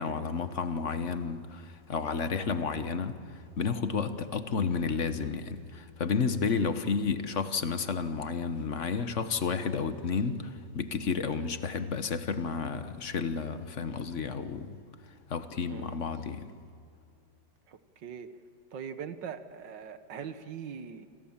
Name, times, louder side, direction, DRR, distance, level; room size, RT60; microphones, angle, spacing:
voice 1, 0.0-14.8 15.3-16.5, left 5 dB, 45° left, 1.3 m, -31 dB
voice 2, 17.7-18.3 18.7-21.1, right 7 dB, 70° right, 1.9 m, -41 dB
28.0 x 27.0 x 7.3 m
omnidirectional pair, 2.0 m